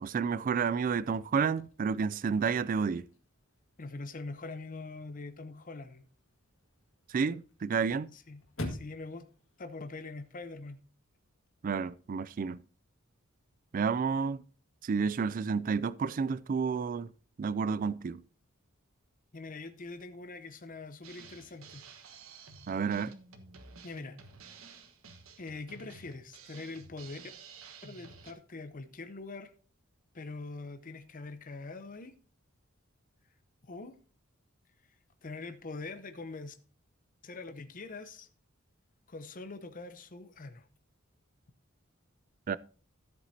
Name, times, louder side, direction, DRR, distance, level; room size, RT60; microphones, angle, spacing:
voice 1, 0.0-3.1 7.1-8.1 11.6-12.6 13.7-14.4 14.8-17.1 17.4-18.2 22.7-23.1 42.5-42.6, right 5 dB, 40° right, 0.3 m, -30 dB
Chirp tweet / Car / Slam, 0.7-10.7, left 1 dB, 70° left, 1.9 m, -49 dB
voice 2, 3.8-6.1 8.1-8.4 8.7-9.3 9.6-10.8 19.3-21.8 23.8-24.2 25.4-27.2 27.8-29.5 30.1-32.1 33.6-34.0 35.2-36.5 37.2-38.3 39.1-40.7, left 3 dB, 40° left, 0.7 m, -43 dB
Drum kit, 21.0-28.3, right 5 dB, 80° right, 1.3 m, -52 dB
13.5 x 8.1 x 2.7 m
head